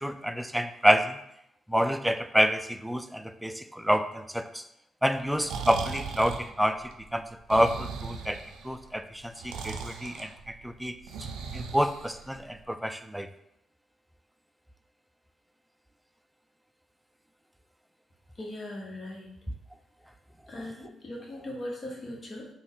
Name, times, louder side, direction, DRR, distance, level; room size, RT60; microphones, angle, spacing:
voice 1, 0.0-1.2 1.7-4.6 5.0-6.8 7.1-7.2 7.5-11.0 11.5-13.3, equal, 5° right, 9 dB, 0.3 m, -28 dB
Breathing, 5.2-12.6, right 5 dB, 85° right, 0.4 m, -39 dB
voice 2, 18.3-19.3 20.5-22.5, left 1 dB, 45° left, -1 dB, 1.2 m, -39 dB
4.0 x 2.3 x 3.7 m, 0.78 s
supercardioid pair, 65°, 0 cm